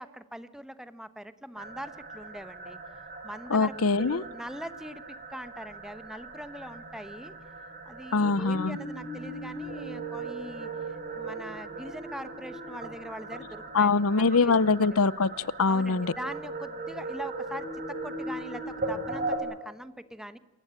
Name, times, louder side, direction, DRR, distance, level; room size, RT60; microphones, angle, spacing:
voice 1, 0.0-2.8 3.2-7.3 7.8-10.7 11.1-14.5 15.7-20.4, equal, ahead, 13 dB, 1.0 m, -42 dB
sound 1, 1.6-19.4, right 2 dB, 40° right, 5.6 m, -38 dB
voice 2, 3.5-4.2 8.1-8.8 13.7-16.1, left 4 dB, 70° left, 21 dB, 0.8 m, -23 dB
27.5 x 15.5 x 8.9 m, 1.1 s
head